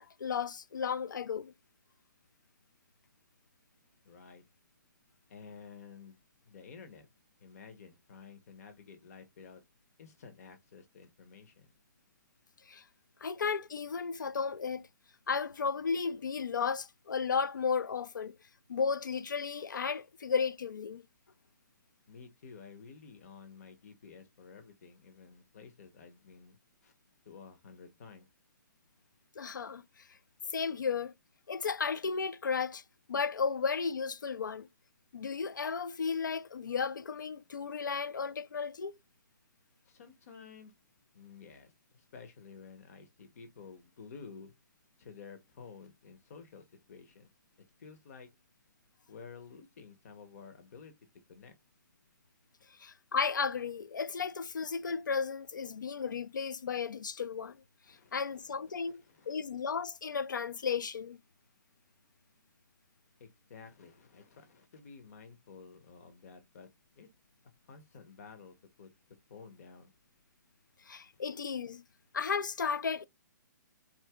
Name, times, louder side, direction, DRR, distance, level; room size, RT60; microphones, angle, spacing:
voice 1, 0.0-1.5 12.7-12.8 13.2-14.9 15.3-18.3 18.7-21.0 29.4-29.8 30.5-31.1 31.5-32.8 33.1-34.7 35.1-38.9 52.8-57.6 57.9-61.2 70.9-71.8 72.1-73.1, left 5 dB, 85° left, 0.5 m, -34 dB
voice 2, 4.0-4.4 5.3-6.2 6.5-7.1 7.4-9.6 10.0-11.7 22.1-26.6 26.8-26.9 27.2-28.3 30.6-30.7 39.8-40.7 41.1-44.5 45.0-47.3 47.8-48.3 49.1-50.9 51.3-51.6 57.8-59.3 63.2-66.7 66.9-67.1 67.7-68.9 69.3-69.9 71.1-71.2, left 5 dB, 55° left, 1.2 m, -52 dB
4.5 x 2.7 x 3.6 m
hypercardioid pair, 140°, 10 cm